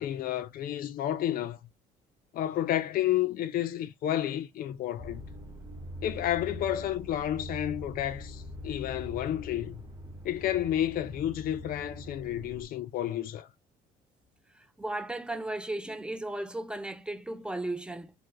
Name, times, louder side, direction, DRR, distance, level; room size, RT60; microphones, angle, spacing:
voice 1, 0.0-1.6 2.3-5.2 6.0-9.8 10.2-13.5, left 12 dB, 60° left, 0.4 m, -31 dB
sound 1, 5.0-12.7, left 1 dB, 20° right, 0.9 m, -43 dB
voice 2, 14.8-18.1, right 2 dB, 5° right, 0.3 m, -35 dB
3.2 x 2.5 x 2.4 m
cardioid pair, 110°, 17 cm